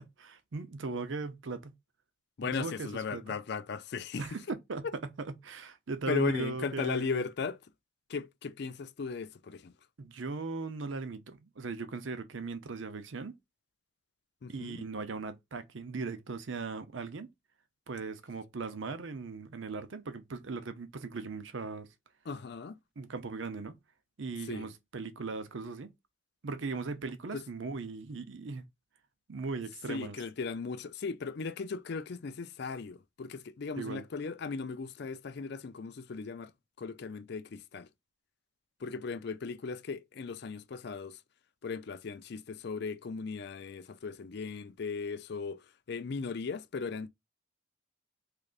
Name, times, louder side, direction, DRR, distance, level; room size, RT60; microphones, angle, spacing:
voice 1, 0.0-1.7 2.4-3.2 4.2-4.4 4.7-7.2 10.0-13.4 14.5-17.3 17.9-21.9 23.0-23.8 24.2-25.9 26.4-28.6 29.3-30.2 33.8-34.0, right 4 dB, 70° right, 0.6 m, -38 dB
voice 2, 2.4-4.2 6.1-7.6 8.1-9.7 14.4-14.8 22.3-22.8 24.4-24.7 27.3-27.4 29.9-36.5 36.8-37.9 38.8-41.2 41.6-47.1, left 5 dB, 55° left, 0.4 m, -37 dB
3.7 x 3.3 x 2.4 m
head